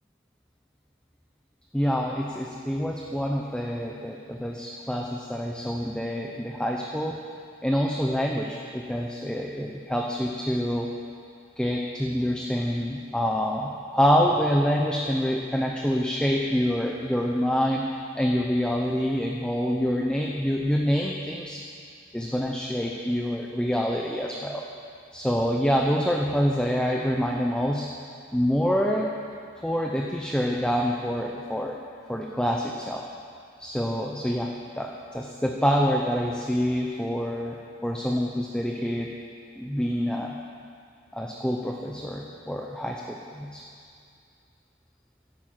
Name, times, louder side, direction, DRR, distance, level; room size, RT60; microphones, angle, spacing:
voice 1, 1.7-7.2 7.6-10.9 11.6-17.9 18.1-21.6 22.1-24.6 25.1-27.9 28.3-29.1 29.6-31.8 32.1-33.0 33.6-37.6 37.8-39.1 39.6-40.4 41.1-43.6, equal, 5° left, 0 dB, 0.7 m, -26 dB
11.5 x 11.5 x 7.7 m, 2.4 s
head